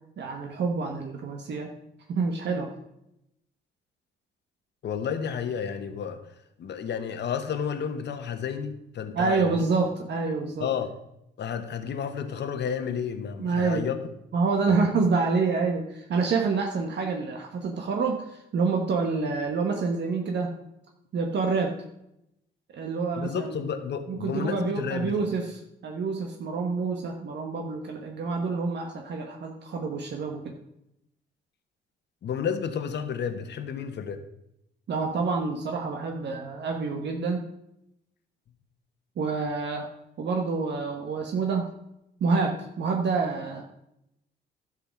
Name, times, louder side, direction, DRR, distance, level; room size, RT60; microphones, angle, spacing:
voice 1, 0.2-1.7 2.1-2.7 9.1-10.7 13.4-13.9 14.3-20.5 21.1-21.8 22.7-23.6 24.1-30.6 34.9-37.4 39.2-39.9 40.2-41.7 42.2-43.6, right 4 dB, 60° right, 2 dB, 1.3 m, -27 dB
voice 2, 4.8-6.2 6.6-9.6 10.6-10.9 11.4-13.9 23.2-25.3 32.2-34.2, left 7 dB, 60° left, 8 dB, 1.1 m, -31 dB
12.0 x 5.0 x 6.0 m, 0.81 s
cardioid pair, 90°, 20 cm